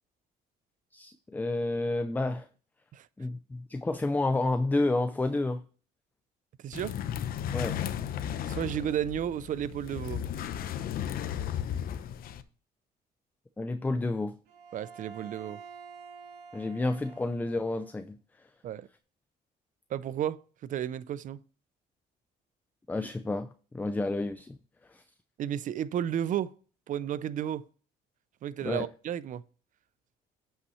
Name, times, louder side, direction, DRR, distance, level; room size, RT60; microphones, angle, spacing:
voice 1, 0.9-2.5 3.2-5.6 7.5-7.8 13.6-14.3 16.5-18.2 22.9-24.6 24.9-25.0 28.6-28.9, left 2 dB, 10° left, 0.4 m, -30 dB
voice 2, 6.6-7.0 8.5-10.2 14.7-15.6 18.6-18.9 19.9-21.4 25.4-26.5 26.9-27.7 28.4-29.4, right 10 dB, 50° right, 0.5 m, -33 dB
sound 1, 6.7-12.4, left 9 dB, 60° left, 0.7 m, -35 dB
Bowed string instrument, 14.5-17.9, right 5 dB, 75° right, 2.3 m, -48 dB
8.2 x 5.6 x 3.1 m
cardioid pair, 110°, 17 cm